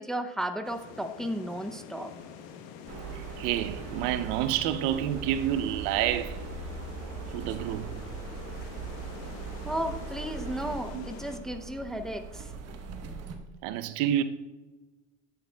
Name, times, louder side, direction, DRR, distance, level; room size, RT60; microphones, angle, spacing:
voice 1, 0.0-2.1 9.6-12.5, right 1 dB, ahead, 0.5 m, -34 dB
sound 1, 0.6-11.4, left 7 dB, 75° left, 1.0 m, -47 dB
sound 2, 2.9-13.3, right 4 dB, 45° right, 1.1 m, -40 dB
voice 2, 3.1-6.4 7.3-7.9 10.9-11.1 13.6-14.2, right 11 dB, 70° right, 0.7 m, -29 dB
9.1 x 9.0 x 2.3 m
supercardioid pair, 95°, 34 cm